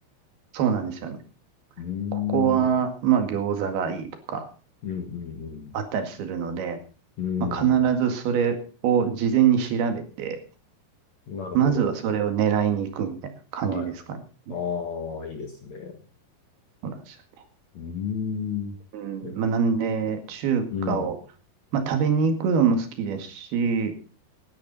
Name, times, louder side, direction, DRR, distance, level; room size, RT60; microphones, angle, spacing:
voice 1, 0.5-1.2 2.1-4.5 5.7-6.8 7.4-8.6 8.8-10.4 11.5-13.2 13.5-13.9 16.8-17.2 18.9-21.1 21.7-23.9, right 7 dB, 65° right, 7 dB, 3.9 m, -24 dB
voice 2, 1.8-2.7 4.8-5.8 7.2-7.8 11.3-11.9 13.7-13.9 14.5-16.0 17.7-18.8 19.2-19.3 20.7-21.1, left 7 dB, 50° left, 4 dB, 2.4 m, -31 dB
18.0 x 11.5 x 4.1 m, 0.36 s
omnidirectional pair, 4.9 m